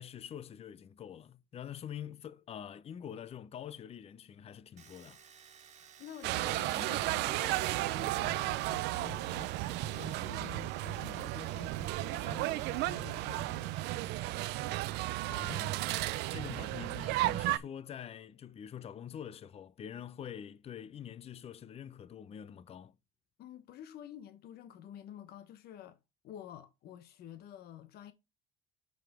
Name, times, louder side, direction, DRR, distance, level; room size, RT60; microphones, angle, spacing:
voice 1, 0.0-5.2 15.3-15.9 16.3-23.0, left 9 dB, 35° left, 0.5 m, -45 dB
Domestic sounds home sounds, 4.8-14.1 14.4-15.2, right 7 dB, 45° right, 1.7 m, -58 dB
voice 2, 5.8-9.6 9.8-13.8 23.4-26.0 26.2-28.1, left 11 dB, 70° left, 0.9 m, -49 dB
sound 1, 6.2-17.6, right 17 dB, 90° right, 0.5 m, -34 dB
5.8 x 5.0 x 4.8 m
cardioid pair, 110°, 17 cm